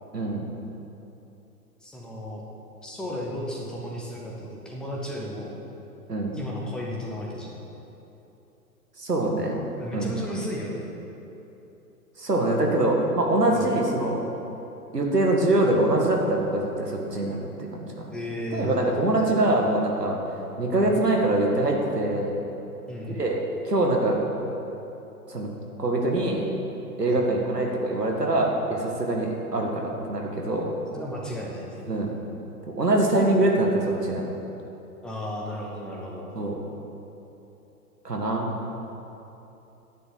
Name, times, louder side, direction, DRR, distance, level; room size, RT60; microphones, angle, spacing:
voice 1, 0.1-0.5 6.1-6.4 9.0-9.6 9.9-10.1 12.2-14.2 14.9-17.8 18.5-20.2 20.6-22.4 23.1-23.4 23.7-24.2 25.3-25.5 25.8-26.5 27.0-30.7 31.9-32.1 32.7-34.3 36.3-36.6 38.0-38.5, right 2 dB, 85° right, 0 dB, 1.9 m, -24 dB
voice 2, 1.8-2.4 2.8-5.5 6.3-7.6 9.8-10.9 13.5-13.7 18.1-19.3 20.7-20.9 22.9-23.2 27.1-27.3 30.9-31.8 35.0-36.3, equal, ahead, -3 dB, 0.4 m, -34 dB
9.9 x 7.7 x 7.8 m, 3.0 s
figure-of-eight pair, 115°, 47 cm